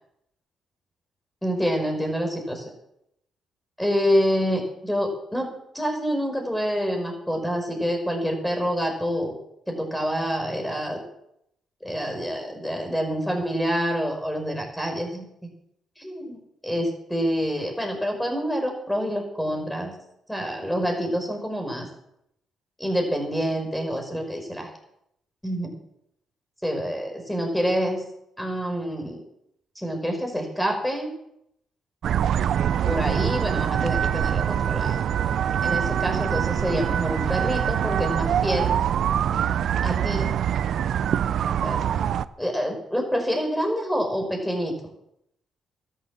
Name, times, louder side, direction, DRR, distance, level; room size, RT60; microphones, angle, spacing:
voice 1, 1.4-2.7 3.8-9.4 9.7-11.0 11.8-15.3 16.0-19.9 20.3-21.9 22.8-24.7 25.4-25.7 26.6-28.0 28.4-29.2 29.8-31.1 32.9-35.0 35.6-38.7 39.8-40.3 41.6-41.8 42.4-44.8, equal, 5° left, 3 dB, 5.4 m, -27 dB
sound 1, 32.0-42.2, right 9 dB, 65° right, 0.6 m, -24 dB
13.0 x 11.5 x 7.5 m, 0.78 s
cardioid pair, 90°, 0 cm